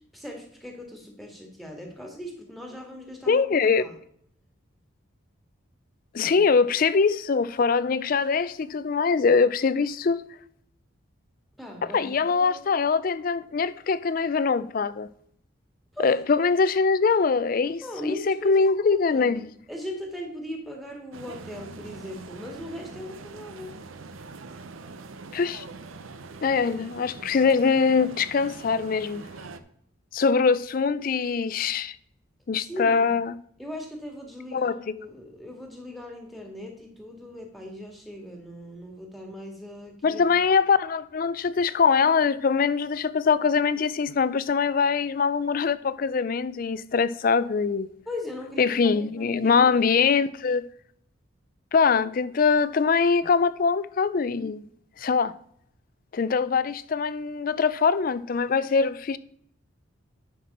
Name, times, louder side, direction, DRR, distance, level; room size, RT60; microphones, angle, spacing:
voice 1, 0.1-4.0 6.3-6.4 11.6-12.8 15.9-16.1 17.8-23.8 32.6-33.2 33.6-40.2 48.1-49.7 50.1-50.3, left 1 dB, ahead, 1.8 m, -39 dB
voice 2, 3.3-3.9 6.1-10.2 11.8-15.1 16.0-19.5 25.3-25.6 26.4-29.2 30.1-32.0 32.5-33.4 34.5-34.8 40.0-47.9 48.6-50.6 51.7-54.6 55.0-55.3 56.1-59.2, left 5 dB, 45° left, 0.4 m, -23 dB
sound 1, 21.1-29.6, right 3 dB, 80° right, 0.7 m, -43 dB
10.0 x 6.0 x 4.2 m
head